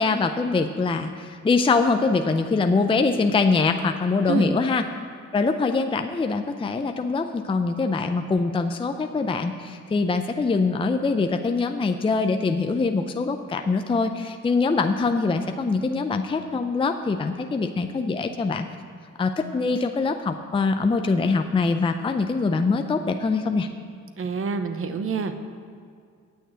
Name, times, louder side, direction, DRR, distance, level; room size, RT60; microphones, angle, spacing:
voice 1, 0.0-4.8 5.3-18.7 19.2-23.7, left 4 dB, 20° left, 6 dB, 0.5 m, -23 dB
voice 2, 24.2-25.4, right 5 dB, 45° right, 8 dB, 0.9 m, -27 dB
9.2 x 6.5 x 8.0 m, 2.2 s
cardioid pair, 90°, 30 cm